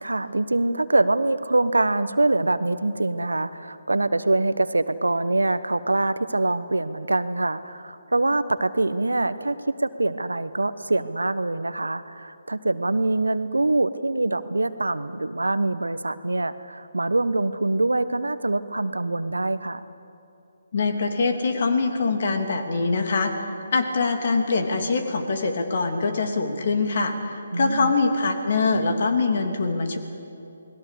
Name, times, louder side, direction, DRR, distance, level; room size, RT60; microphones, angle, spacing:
voice 1, 0.0-19.8 27.5-27.9, right 2 dB, 75° right, 13 dB, 1.1 m, -24 dB
voice 2, 20.7-23.3 23.7-30.0, left 3 dB, 50° left, 5 dB, 3.0 m, -23 dB
28.5 x 20.5 x 6.8 m, 2.7 s
figure-of-eight pair, 140°, 0 cm